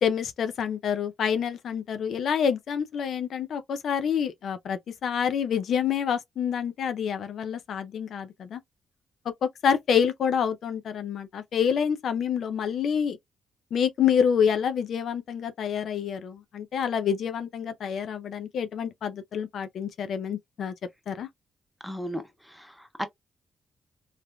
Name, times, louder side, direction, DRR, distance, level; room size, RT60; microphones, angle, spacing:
voice 1, 0.0-8.6 9.4-13.2 13.7-20.7 21.1-21.3, left 7 dB, 70° left, 0.5 m, -27 dB
voice 2, 21.8-23.1, equal, ahead, 0.9 m, -35 dB
3.3 x 2.9 x 2.3 m
supercardioid pair, 60°, 0 cm